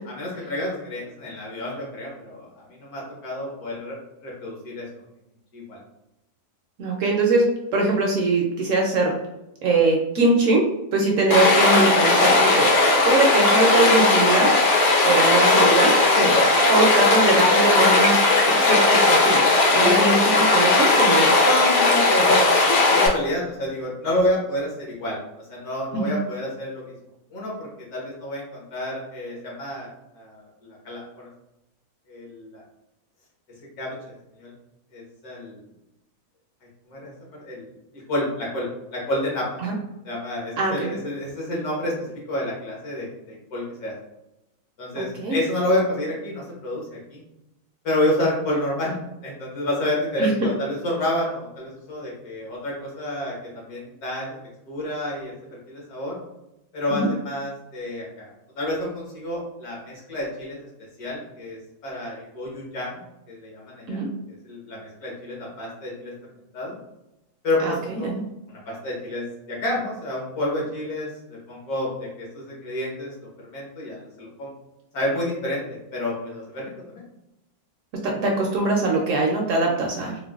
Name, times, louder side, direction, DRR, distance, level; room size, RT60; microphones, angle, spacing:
voice 1, 0.1-4.0 4.2-4.8 5.5-5.8 16.2-16.3 19.8-20.1 21.4-26.8 27.3-29.9 30.1-31.3 32.1-32.6 33.8-34.0 34.4-34.5 34.9-35.6 36.9-37.7 37.9-39.5 40.0-43.9 44.8-47.2 47.8-49.0 49.2-54.4 54.7-55.3 55.7-56.2 56.7-58.3 58.6-60.7 61.0-63.0 63.3-64.1 64.4-66.1 66.5-66.8 67.4-68.1 68.5-73.1 73.4-74.5 74.9-75.6 75.9-77.0, left 1 dB, 75° left, -4 dB, 1.7 m, -29 dB
voice 2, 6.8-7.5 7.7-9.1 9.6-10.7 10.9-12.7 13.0-14.5 15.0-15.9 16.7-19.4 19.7-21.3 25.9-26.1 39.6-39.7 40.6-40.9 45.0-45.4 50.2-50.5 56.9-57.1 63.9-64.1 67.6-68.2 78.0-80.2, right 2 dB, 65° right, 0 dB, 0.8 m, -22 dB
Stream, 11.3-23.1, left 2 dB, 60° left, 0.9 m, -17 dB
4.5 x 2.1 x 2.3 m, 0.90 s
omnidirectional pair, 1.6 m